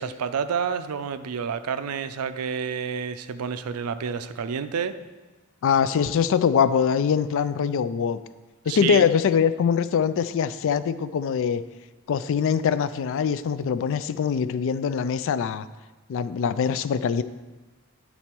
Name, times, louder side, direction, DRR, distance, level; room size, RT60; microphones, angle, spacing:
voice 1, 0.0-4.9 8.7-9.1, right 6 dB, 80° right, 12 dB, 0.4 m, -29 dB
voice 2, 5.6-8.2 8.7-11.6 12.1-15.7 16.1-17.2, left 7 dB, 60° left, 14 dB, 0.3 m, -23 dB
9.9 x 4.1 x 4.4 m, 1.2 s
head